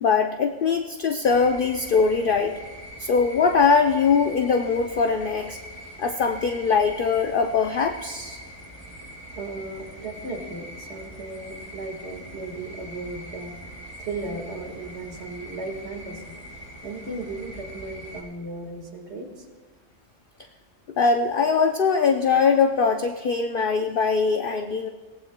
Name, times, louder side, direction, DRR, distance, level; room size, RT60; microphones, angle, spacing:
voice 1, 0.0-2.6 3.0-5.6 6.0-8.4 21.0-24.9, left 5 dB, 55° left, 5 dB, 0.7 m, -21 dB
sound 1, 1.2-18.2, equal, 35° right, 4.7 m, -42 dB
voice 2, 9.4-13.7 14.0-16.4 16.8-19.5, right 2 dB, 60° right, 3 dB, 2.0 m, -36 dB
22.5 x 17.5 x 2.2 m, 1.4 s
omnidirectional pair, 1.3 m